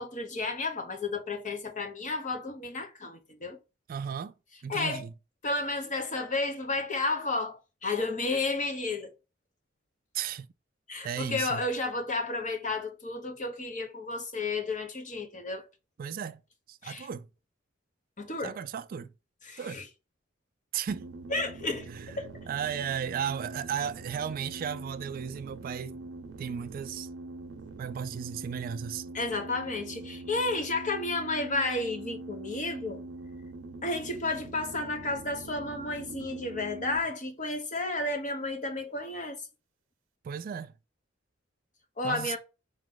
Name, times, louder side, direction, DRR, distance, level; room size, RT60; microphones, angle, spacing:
voice 1, 0.0-3.6 4.7-5.0 5.4-9.1 10.9-15.7 16.8-17.1 18.2-18.6 19.4-19.9 21.3-21.9 22.2-22.4 29.1-33.0 33.8-39.4 42.0-42.4, left 2 dB, 40° left, 1.0 m, -32 dB
voice 2, 3.9-4.3 4.6-5.1 10.1-10.5 11.0-11.6 16.0-16.4 16.7-17.3 18.4-19.1 19.6-19.8 20.7-21.1 21.9-22.2 22.5-26.1 26.4-27.1 27.8-29.1 40.2-40.7 42.0-42.4, right 8 dB, 50° right, 0.3 m, -35 dB
sound 1, 20.9-37.0, right 2 dB, 90° right, 0.6 m, -43 dB
4.8 x 3.0 x 3.7 m
head